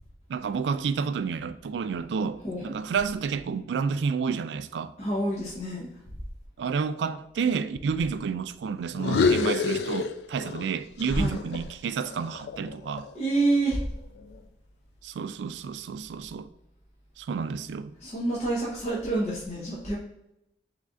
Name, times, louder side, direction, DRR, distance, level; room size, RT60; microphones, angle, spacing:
voice 1, 0.3-4.9 6.6-13.1 15.0-16.5 17.2-17.9, right 5 dB, 85° right, 0.3 m, -30 dB
voice 2, 2.4-2.8 5.0-5.9 11.1-11.4 13.1-13.8 18.0-20.0, right 2 dB, 40° left, 0.8 m, -27 dB
sound 1, 8.9-10.7 11.0-13.2, left 5 dB, 70° left, 0.3 m, -28 dB
3.6 x 3.2 x 3.7 m
head